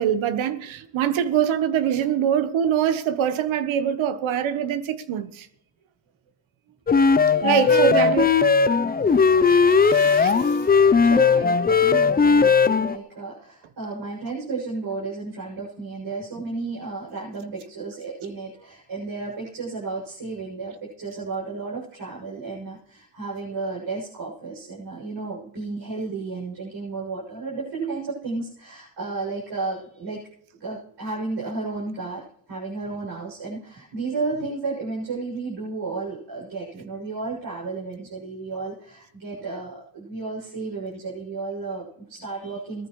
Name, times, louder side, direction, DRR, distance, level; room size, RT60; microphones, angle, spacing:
voice 1, 0.0-5.5 7.4-8.3 9.5-10.6, right 9 dB, 65° right, 1.3 m, -24 dB
sound 1, 6.9-13.0, left 5 dB, 20° left, 0.6 m, -18 dB
voice 2, 7.2-8.3 8.8-9.6 11.0-30.2 30.5-42.9, right 3 dB, 50° right, 7.1 m, -33 dB
18.5 x 13.5 x 3.2 m
supercardioid pair, 70°, 50 cm